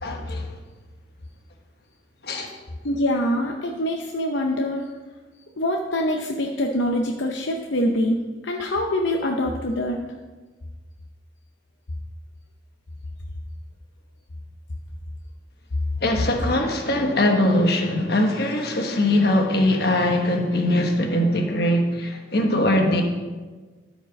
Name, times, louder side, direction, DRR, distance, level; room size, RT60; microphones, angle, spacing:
voice 1, 0.0-0.4 2.2-2.5 16.0-23.0, left 1 dB, 55° left, 3 dB, 1.3 m, -21 dB
voice 2, 2.8-4.8 5.6-8.2 8.4-10.0, left 1 dB, 75° left, 1 dB, 0.7 m, -24 dB
12.5 x 5.2 x 5.3 m, 1.3 s
head